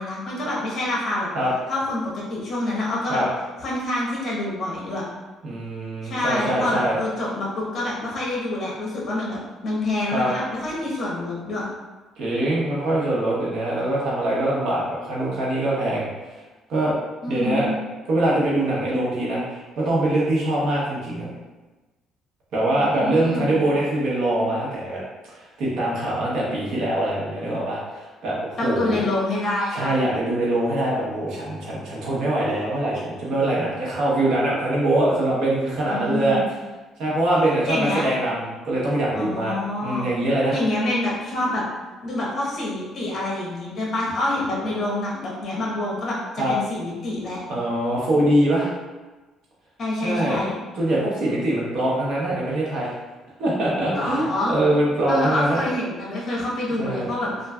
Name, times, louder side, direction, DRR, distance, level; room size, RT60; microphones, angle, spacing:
voice 1, 0.0-1.3 1.7-3.2 3.6-5.0 6.0-9.4 9.6-11.7 17.2-17.8 22.7-23.6 28.6-29.9 35.8-36.4 37.7-38.0 39.1-40.1 40.5-41.6 42.0-47.4 49.8-50.6 53.9-54.6 55.1-57.3, left 1 dB, 45° left, -5 dB, 1.0 m, -26 dB
voice 2, 5.4-6.9 10.1-10.3 12.2-16.1 16.7-16.9 17.3-17.7 18.1-21.3 22.5-25.0 25.3-29.1 29.7-36.4 37.0-39.5 39.8-40.5 46.4-46.5 47.5-48.7 50.0-50.4 50.8-52.9 53.4-55.6 56.8-57.1, right 1 dB, 70° right, -5 dB, 0.9 m, -23 dB
3.2 x 2.4 x 2.3 m, 1.2 s
cardioid pair, 115°, 0 cm